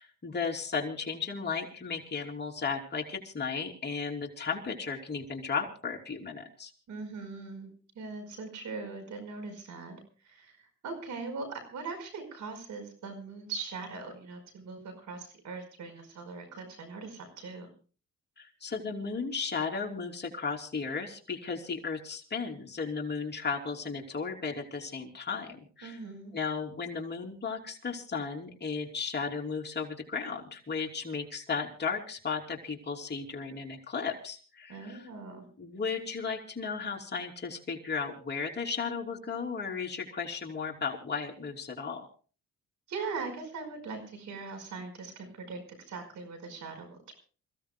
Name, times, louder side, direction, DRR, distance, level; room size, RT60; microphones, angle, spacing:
voice 1, 0.0-6.7 18.4-26.0 26.3-35.0 35.6-42.1, left 5 dB, 35° left, 1 dB, 3.1 m, -35 dB
voice 2, 6.9-17.7 25.8-26.3 34.7-35.5 42.9-47.1, right 4 dB, 75° right, 7 dB, 5.1 m, -41 dB
28.0 x 16.0 x 2.3 m, 0.38 s
cardioid pair, 90°, 30 cm